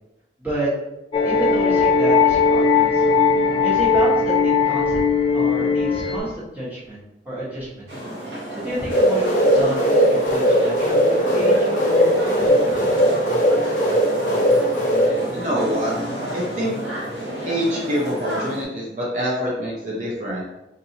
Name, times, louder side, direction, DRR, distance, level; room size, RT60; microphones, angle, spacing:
voice 1, 0.4-0.7 1.2-3.0 3.6-5.0 5.3-7.0 7.2-7.8 8.5-12.9, right 1 dB, 10° right, -9 dB, 1.3 m, -29 dB
sound 1, 1.1-6.2, left 5 dB, 30° left, 0.4 m, -18 dB
sound 2, 7.9-18.6, right 1 dB, 85° right, 1.2 m, -31 dB
sound 3, 8.9-15.1, equal, 50° left, 1.0 m, -18 dB
voice 2, 15.3-16.0 16.3-16.8 17.4-20.4, equal, 45° right, -5 dB, 0.6 m, -25 dB
4.0 x 2.6 x 2.8 m, 0.92 s
head